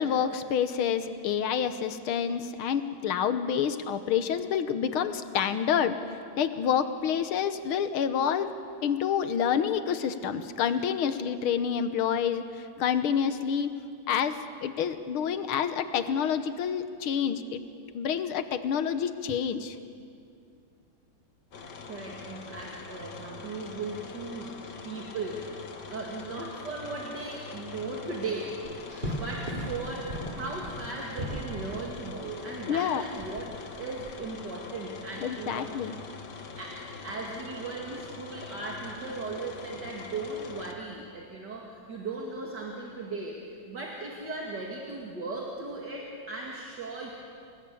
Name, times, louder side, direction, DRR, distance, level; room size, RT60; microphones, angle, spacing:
voice 1, 0.0-6.0 6.4-8.5 8.8-13.7 14.1-17.6 17.9-19.8 32.7-33.0 35.2-36.0, left 8 dB, 90° left, 10 dB, 1.9 m, -28 dB
sound 1, 21.5-40.7, left 5 dB, 55° left, 2.1 m, -44 dB
voice 2, 21.9-24.6 24.8-28.6 28.9-33.5 33.8-35.9 36.6-47.1, right 3 dB, 55° right, -2 dB, 3.0 m, -37 dB
sound 2, 28.6-32.0 33.2-34.1, equal, 25° right, 2.6 m, -36 dB
29.0 x 19.5 x 8.6 m, 2.4 s
omnidirectional pair, 2.3 m